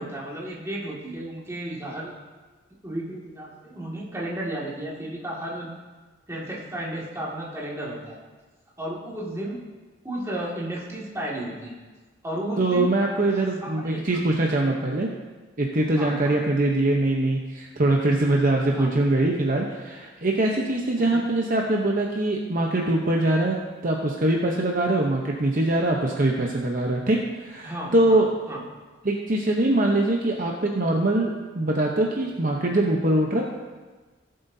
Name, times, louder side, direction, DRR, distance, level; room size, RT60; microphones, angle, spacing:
voice 1, 0.0-2.2 2.8-5.7 6.3-8.2 8.8-9.6 10.0-11.8 12.2-13.0 13.3-14.0 15.9-16.4 18.7-18.9 21.0-21.3 27.6-28.2 28.5-28.6, right 1 dB, 15° right, -5 dB, 2.1 m, -33 dB
voice 2, 12.6-15.1 15.6-23.6 23.8-28.3 29.0-33.4, right 2 dB, 45° right, 0 dB, 0.9 m, -23 dB
18.0 x 7.7 x 2.7 m, 1.3 s
head